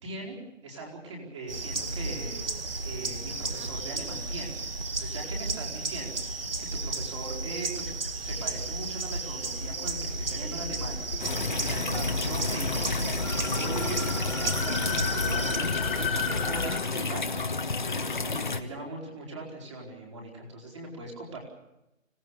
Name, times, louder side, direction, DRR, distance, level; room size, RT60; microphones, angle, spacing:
voice 1, 0.0-0.4 0.6-2.5 2.8-4.6 4.9-6.2 6.6-7.9 8.2-21.4, right 2 dB, 20° right, 0 dB, 4.5 m, -40 dB
sound 1, 1.5-15.6, right 3 dB, 45° right, 1.8 m, -33 dB
sound 2, 9.3-16.8, left 4 dB, 90° left, 2.6 m, -34 dB
sound 3, 11.2-18.6, left 3 dB, 35° left, 1.2 m, -31 dB
25.5 x 18.5 x 7.1 m, 0.91 s
hypercardioid pair, 175°, 40 cm